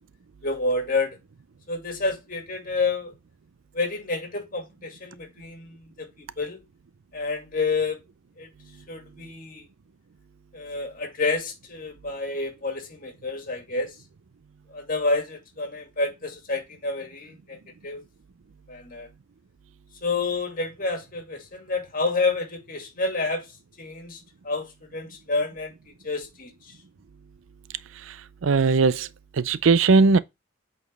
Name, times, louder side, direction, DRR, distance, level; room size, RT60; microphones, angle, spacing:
voice 1, 0.4-1.2 1.7-3.1 3.7-6.6 7.1-8.0 8.4-8.5 8.9-9.7 10.5-14.0 14.7-18.0 18.7-19.1 20.0-26.7, left 3 dB, 45° left, 2.3 m, -29 dB
voice 2, 28.4-29.1 29.4-30.2, right 4 dB, 85° right, 0.5 m, -18 dB
8.2 x 4.4 x 3.4 m
head